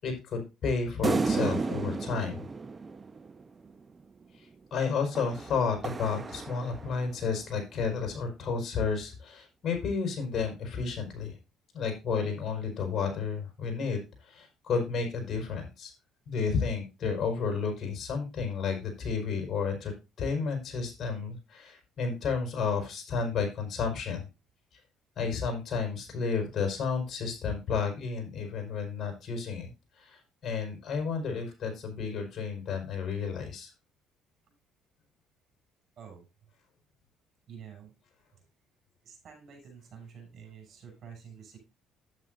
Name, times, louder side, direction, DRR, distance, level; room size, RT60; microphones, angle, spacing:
voice 1, 0.0-2.4 4.4-11.4 11.7-15.9 16.3-19.9 20.2-24.3 25.1-29.7 30.0-33.7, left 5 dB, 50° left, 4 dB, 5.1 m, -32 dB
sound 1, 1.0-3.7 5.2-7.2, right 4 dB, 25° right, 0.7 m, -33 dB
voice 2, 37.5-37.9 39.0-41.6, right 7 dB, 55° right, 4 dB, 6.6 m, -48 dB
11.0 x 9.2 x 2.6 m, 0.27 s
cardioid pair, 95°, 0 cm